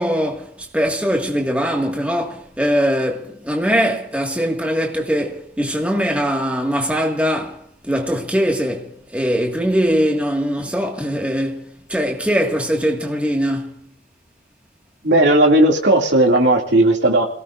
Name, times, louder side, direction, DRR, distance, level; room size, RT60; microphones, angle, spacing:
voice 1, 0.0-7.6 7.8-13.7, equal, 5° right, 1.9 m, -21 dB
voice 2, 15.0-17.2, right 1 dB, 75° right, 2.6 m, -14 dB
30.0 x 17.5 x 2.6 m
head